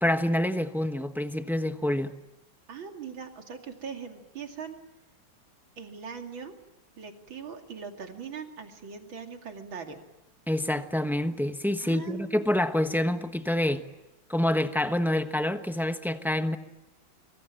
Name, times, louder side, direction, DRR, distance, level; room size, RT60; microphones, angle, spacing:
voice 1, 0.0-2.1 10.5-13.8 14.3-16.6, left 1 dB, ahead, 0.7 m, -27 dB
voice 2, 2.7-4.8 5.8-6.5 7.0-10.0 11.8-12.4, right 6 dB, 80° right, 3.3 m, -40 dB
25.0 x 25.0 x 9.0 m
omnidirectional pair, 2.1 m